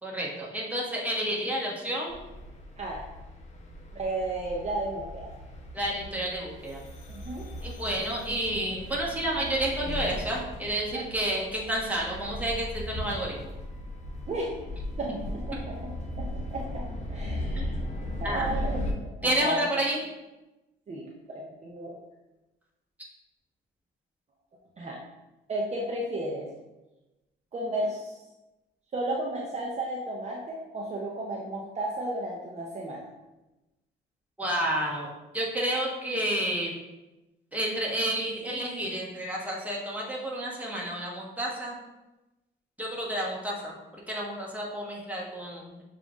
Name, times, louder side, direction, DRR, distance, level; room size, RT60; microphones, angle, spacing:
voice 1, 0.0-2.2 5.7-6.8 7.6-13.5 17.6-17.7 18.2-18.5 19.2-20.0 34.4-35.1 35.3-36.7 37.5-41.7 42.8-43.7 44.1-45.8, right 1 dB, 5° right, -3 dB, 1.1 m, -30 dB
sound 1, 2.1-18.9, left 1 dB, 35° left, 0.7 m, -37 dB
voice 2, 3.9-5.3 7.1-7.5 10.9-11.0 14.3-14.5 15.0-15.9 16.2-16.8 17.1-17.8 18.2-19.7 20.9-21.9 24.8-25.0 25.5-26.5 27.5-28.2 28.9-33.0, right 1 dB, 35° right, -3 dB, 0.6 m, -33 dB
6.7 x 2.5 x 2.4 m, 1.0 s
cardioid pair, 90°, 20 cm